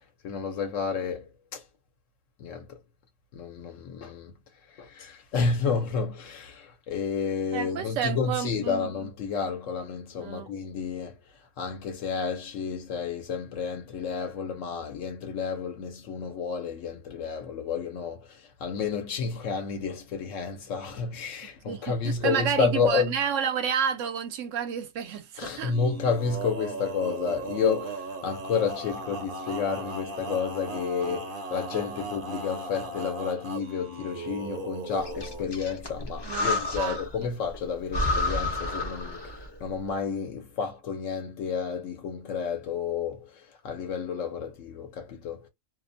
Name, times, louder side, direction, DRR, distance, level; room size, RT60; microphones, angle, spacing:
voice 1, 0.2-1.6 2.4-2.8 3.3-4.3 4.8-11.2 11.6-23.1 25.4-39.3 39.6-45.5, left 5 dB, 75° left, 1.0 m, -31 dB
voice 2, 7.5-8.9 10.2-10.5 21.7-25.8 36.2-37.3, right 7 dB, 75° right, 1.0 m, -30 dB
Male singing, 25.6-35.5, right 3 dB, 50° right, 0.8 m, -37 dB
Breathing, 35.0-37.2 37.5-37.6 37.9-39.6, left 2 dB, 30° left, 0.5 m, -30 dB
2.6 x 2.1 x 2.5 m
omnidirectional pair, 1.3 m